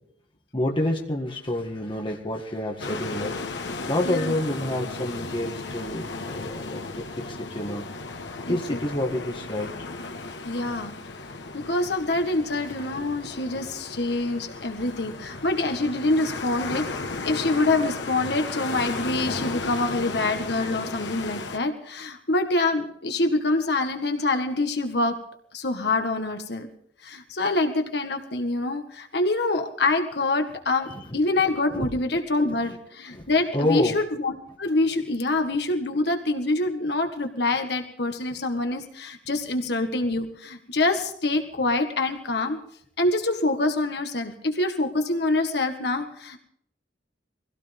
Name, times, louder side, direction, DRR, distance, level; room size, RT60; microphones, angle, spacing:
voice 1, 0.5-7.8 8.5-9.7 30.9-31.1 31.7-31.9 33.1-33.3 33.5-34.0, left 1 dB, 25° left, 1 dB, 1.8 m, -28 dB
sound 1, 2.8-21.6, left 3 dB, 80° left, 1.4 m, -35 dB
voice 2, 8.5-8.8 10.4-10.9 11.5-16.9 17.2-25.2 25.5-26.7 27.0-42.6 43.0-46.4, left 2 dB, 65° left, 5 dB, 1.7 m, -25 dB
23.5 x 16.5 x 3.6 m, 0.65 s
head